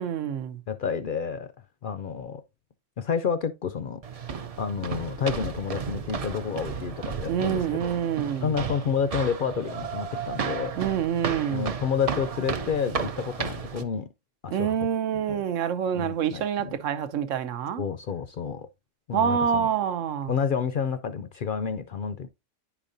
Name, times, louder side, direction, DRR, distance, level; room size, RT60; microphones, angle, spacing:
voice 1, 0.0-0.6 7.3-8.5 10.8-11.7 14.5-17.8 19.1-20.3, right 8 dB, 85° right, 1.0 m, -27 dB
voice 2, 0.7-1.5 1.8-2.4 3.0-4.0 4.6-8.0 8.4-10.7 11.5-14.1 14.4-14.8 15.3-15.4 15.9-16.8 17.8-18.7 19.1-19.7 20.3-22.3, left 6 dB, 60° left, 0.5 m, -29 dB
sound 1, 4.0-13.8, right 6 dB, 45° right, 0.5 m, -33 dB
9.9 x 5.1 x 2.6 m
omnidirectional pair, 1.3 m